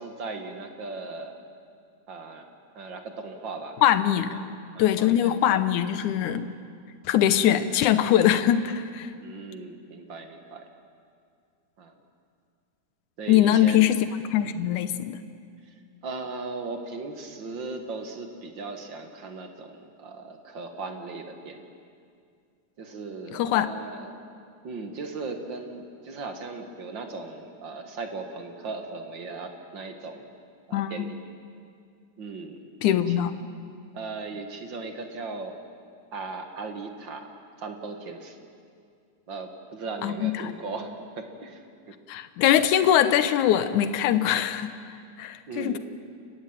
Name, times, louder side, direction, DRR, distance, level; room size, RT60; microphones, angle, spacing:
voice 1, 0.0-1.4 2.1-2.5 2.7-3.8 4.2-4.4 4.7-5.4 7.4-7.8 9.2-10.7 11.8-11.9 13.2-13.9 15.7-15.8 16.0-21.7 22.8-24.2 24.6-30.3 30.7-31.2 32.2-33.2 33.9-35.6 36.1-37.3 37.6-38.4 39.3-42.0 45.5-45.8, right 3 dB, 45° right, 5 dB, 1.9 m, -38 dB
voice 2, 3.8-4.4 4.8-6.5 7.1-9.1 13.3-15.2 23.3-23.7 30.7-31.1 32.8-33.4 40.0-40.5 42.1-44.7 45.2-45.8, left 11 dB, 75° left, 12 dB, 2.4 m, -22 dB
29.5 x 15.0 x 9.1 m, 2.3 s
omnidirectional pair, 3.6 m